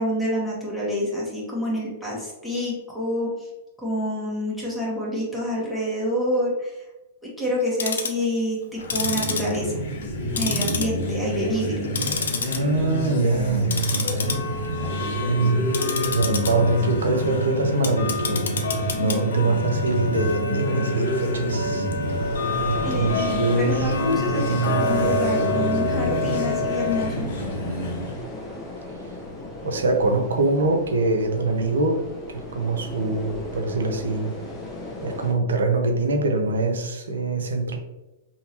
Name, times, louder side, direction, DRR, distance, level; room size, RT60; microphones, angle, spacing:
voice 1, 0.0-3.3 3.8-6.7 7.4-9.8 10.3-11.7 22.8-27.3, equal, 5° left, -6 dB, 1.2 m, -27 dB
Tick-tock, 7.6-8.2 8.8-10.1 10.4-11.2 11.6-12.6 13.0-13.2 13.6-27.1, left 3 dB, 85° left, 0.5 m, -28 dB
sound 1, 8.7-28.2, equal, 70° left, 1.3 m, -28 dB
voice 2, 12.4-14.4 15.3-15.8 16.1-21.9 22.6-24.0 24.4-25.1 29.6-32.0 32.3-34.4 35.0-37.8, right 2 dB, 90° right, 4 dB, 0.7 m, -24 dB
sound 2, 22.0-35.3, left 2 dB, 20° left, 0.8 m, -35 dB
3.6 x 2.7 x 2.9 m, 0.99 s
hypercardioid pair, 125°, 0 cm